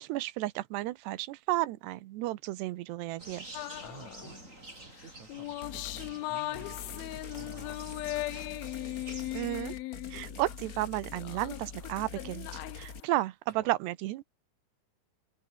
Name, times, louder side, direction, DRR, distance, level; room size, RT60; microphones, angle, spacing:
voice 1, 0.0-3.5 9.3-9.7 10.1-14.3, right 17 dB, 85° right, 3.1 m, -33 dB
sound 1, 3.2-9.4, right 2 dB, 15° right, 7.1 m, -49 dB
sound 2, 3.5-4.4 5.0-10.9 11.2-13.1, left 18 dB, 80° left, 2.4 m, -39 dB
voice 2, 3.8-8.6 13.5-13.7, right 4 dB, 45° right, 5.1 m, -53 dB
sound 3, 5.6-6.1 6.5-13.0, left 5 dB, 35° left, 1.5 m, -44 dB
open air
omnidirectional pair, 4.7 m